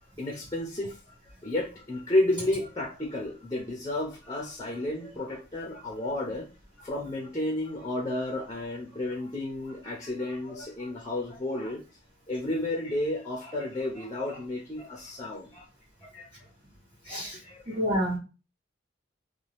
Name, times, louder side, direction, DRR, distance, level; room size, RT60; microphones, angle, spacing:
voice 1, 0.2-6.5 6.8-11.8 12.3-15.7 16.0-16.5 17.0-17.9, left 1 dB, 20° left, -1 dB, 0.7 m, -32 dB
voice 2, 17.1-17.4 17.8-18.2, equal, 25° right, -10 dB, 1.2 m, -28 dB
2.8 x 2.3 x 3.2 m, 0.31 s
head